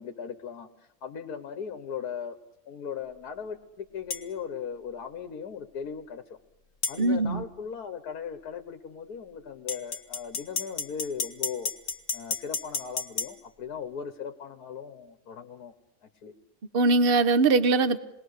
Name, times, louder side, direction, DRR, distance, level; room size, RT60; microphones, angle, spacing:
voice 1, 0.0-2.4 2.7-6.4 6.9-11.7 12.1-15.7 16.0-16.3, left 7 dB, 75° left, 7 dB, 1.7 m, -38 dB
sound 1, 4.1-4.3 6.8-7.0 9.7-13.3, left 4 dB, 55° left, 1.8 m, -32 dB
voice 2, 7.0-7.4 16.7-18.0, right 3 dB, 40° right, 12 dB, 1.1 m, -21 dB
27.5 x 21.0 x 6.6 m, 0.86 s
omnidirectional pair, 1.7 m